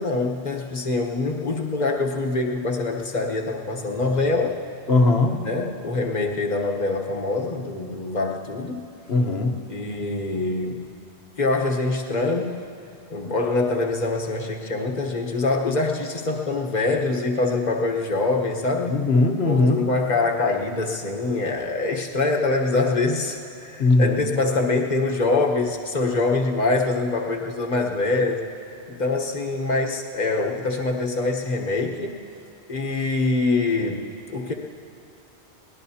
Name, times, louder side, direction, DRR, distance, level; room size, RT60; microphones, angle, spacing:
voice 1, 0.0-4.6 5.4-8.8 9.7-10.8 11.4-12.6 13.1-19.0 19.4-28.5 28.9-32.2 32.7-34.5, left 3 dB, 40° left, 1 dB, 1.2 m, -24 dB
voice 2, 4.9-5.5 9.1-9.6 18.9-19.9 23.8-24.2, left 2 dB, 70° left, 4 dB, 1.4 m, -19 dB
22.5 x 19.0 x 2.8 m, 2.8 s
omnidirectional pair, 1.1 m